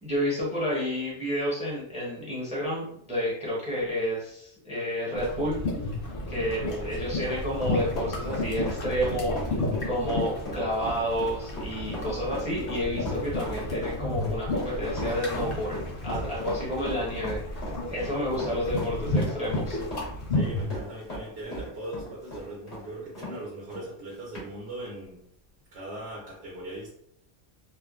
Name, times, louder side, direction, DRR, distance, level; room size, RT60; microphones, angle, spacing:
voice 1, 0.0-5.6 6.3-15.8 16.0-17.4 17.9-19.8, equal, 10° right, -5 dB, 0.6 m, -30 dB
sound 1, 5.1-20.7, left 1 dB, 60° left, 0.8 m, -32 dB
voice 2, 6.6-7.2 16.2-16.4 17.9-18.6 20.3-25.2 25.7-26.9, right 1 dB, 70° right, -5 dB, 0.9 m, -39 dB
Run, 6.9-23.4 23.7-23.8 24.4-24.5, equal, 75° left, 1.4 m, -38 dB
3.1 x 2.1 x 2.3 m, 0.69 s
omnidirectional pair, 1.1 m